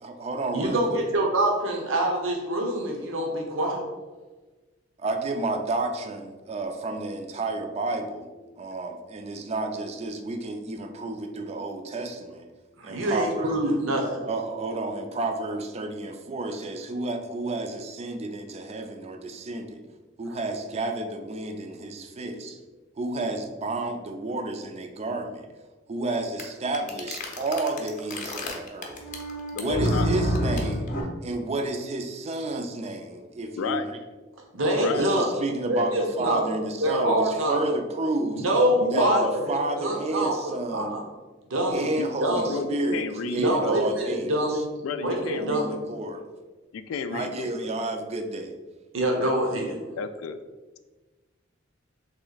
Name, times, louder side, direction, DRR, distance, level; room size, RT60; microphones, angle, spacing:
voice 1, 0.0-1.1 5.0-8.3 8.6-12.5 12.8-13.6 14.2-19.8 20.2-22.6 23.0-25.5 25.9-29.0 29.5-30.9 31.2-34.0 34.7-38.4 38.9-41.0 41.7-44.6 45.3-46.2 47.1-48.5, right 2 dB, 35° right, 5 dB, 0.4 m, -31 dB
voice 2, 0.5-3.8 12.8-14.2 34.5-35.3 35.9-36.5 36.8-37.7 38.3-41.0 41.5-41.9 42.2-42.6 43.4-44.6 45.0-45.7 47.1-47.2 48.9-49.8, right 1 dB, 80° right, 0 dB, 0.8 m, -25 dB
sound 1, 26.4-26.5 26.7-31.0, equal, 40° left, 0.6 m, -27 dB
voice 3, 29.5-30.1 33.6-33.9 34.8-35.1 38.8-39.3 42.0-42.1 42.5-43.8 44.8-45.8 46.7-47.7 49.2-49.3 50.0-50.4, left 5 dB, 85° left, 11 dB, 0.3 m, -32 dB
3.2 x 3.0 x 3.9 m, 1.3 s
head